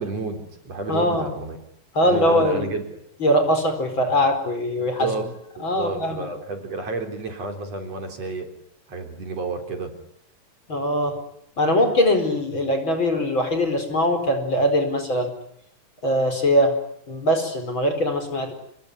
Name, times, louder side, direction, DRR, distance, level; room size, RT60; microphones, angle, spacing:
voice 1, 0.0-1.6 2.0-3.0 4.8-8.5 8.9-9.9 11.8-12.0, right 3 dB, 50° right, 6 dB, 4.7 m, -31 dB
voice 2, 0.9-1.3 2.0-2.7 3.2-5.1 5.6-6.3 10.7-11.2 11.6-15.3 16.0-16.7 17.1-18.5, left 1 dB, 35° left, 7 dB, 5.2 m, -21 dB
29.0 x 21.0 x 9.8 m, 0.71 s
omnidirectional pair, 3.8 m